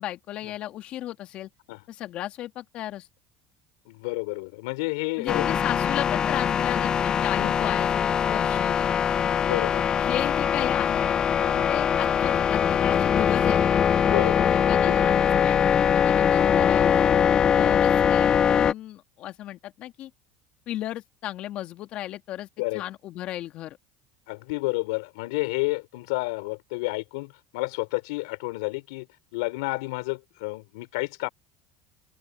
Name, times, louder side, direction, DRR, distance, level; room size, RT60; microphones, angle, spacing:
voice 1, 0.0-1.5 1.9-3.1 5.2-7.9 8.3-8.9 10.0-11.2 11.7-13.6 14.2-17.0 17.5-20.1 20.7-22.5 22.7-23.8, left 13 dB, 55° left, 2.6 m, -34 dB
voice 2, 3.9-5.6 6.1-6.2 7.3-7.7 9.3-9.9 10.2-10.3 11.4-11.7 14.0-15.1 17.6-17.8 22.6-22.8 24.3-29.1 29.3-31.3, left 26 dB, 80° left, 5.1 m, -31 dB
sound 1, 5.3-18.7, left 8 dB, 35° left, 0.3 m, -22 dB
open air
supercardioid pair, 90°, 2 cm